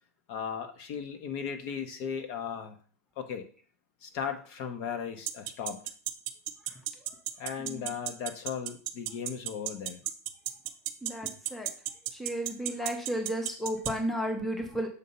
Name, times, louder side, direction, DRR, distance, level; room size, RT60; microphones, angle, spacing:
voice 1, 0.3-2.8 3.2-3.5 4.0-5.8 7.4-10.0, left 7 dB, 40° left, 7 dB, 0.8 m, -36 dB
sound 1, 5.3-13.9, right 15 dB, 45° right, 0.6 m, -33 dB
voice 2, 11.0-11.7 12.1-14.9, equal, ahead, 3 dB, 0.7 m, -33 dB
6.7 x 2.7 x 5.3 m, 0.43 s
supercardioid pair, 155°, 8 cm